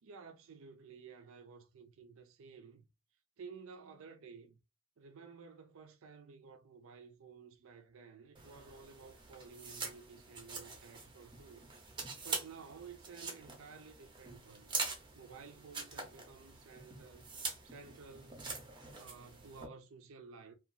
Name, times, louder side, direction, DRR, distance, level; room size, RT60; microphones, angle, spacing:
voice 1, 0.0-2.9 3.4-4.6 5.0-11.7 12.2-14.7 15.1-17.3 17.6-18.5 18.9-20.6, right 5 dB, 70° right, 0.4 m, -54 dB
sound 1, 8.3-19.6, right 4 dB, 20° right, 0.6 m, -44 dB
2.8 x 2.4 x 2.5 m
head